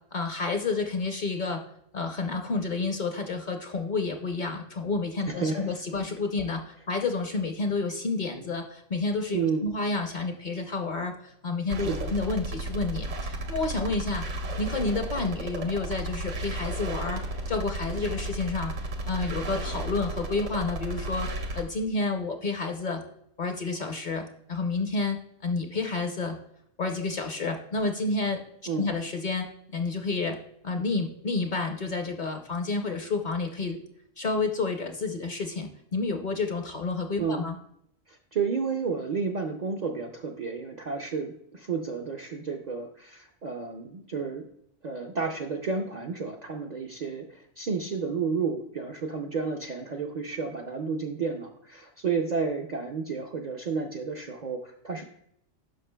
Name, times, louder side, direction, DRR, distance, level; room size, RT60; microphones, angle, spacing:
voice 1, 0.1-1.6 1.9-14.2 14.6-18.7 19.1-23.0 23.4-26.3 26.8-28.4 28.8-30.4 30.6-33.8 34.2-37.6, left 3 dB, 50° left, 5 dB, 0.7 m, -30 dB
voice 2, 5.3-5.7 9.3-9.7 11.9-12.1 28.7-28.9 37.2-37.4 38.1-44.4 44.8-55.0, right 5 dB, 55° right, 2 dB, 0.5 m, -31 dB
sound 1, 11.7-21.6, right 1 dB, 85° right, 1.2 m, -34 dB
11.5 x 5.0 x 2.2 m, 0.72 s
omnidirectional pair, 1.2 m